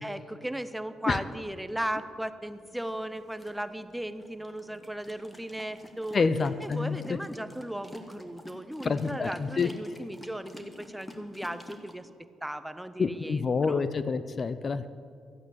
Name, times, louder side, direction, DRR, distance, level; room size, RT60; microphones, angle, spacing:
voice 1, 0.0-6.3 6.6-12.1 12.4-13.4 13.7-13.8, right 1 dB, 5° right, 11 dB, 0.7 m, -36 dB
sound 1, 2.4-11.9, left 1 dB, 15° left, 1.5 m, -49 dB
voice 2, 6.1-7.0 8.8-9.7 13.0-14.9, left 4 dB, 40° left, 13 dB, 0.5 m, -27 dB
14.0 x 8.3 x 8.3 m, 2.3 s
cardioid pair, 90°, 0 cm